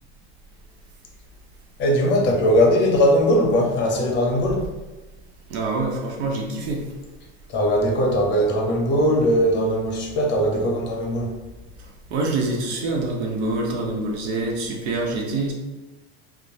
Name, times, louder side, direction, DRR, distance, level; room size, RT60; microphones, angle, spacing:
voice 1, 1.8-4.7 7.5-11.3, equal, 35° left, 1 dB, 0.7 m, -20 dB
voice 2, 5.5-6.9 12.1-15.5, right 2 dB, 85° right, 0 dB, 0.7 m, -25 dB
2.9 x 2.0 x 2.6 m, 1.2 s
supercardioid pair, 125°, 32 cm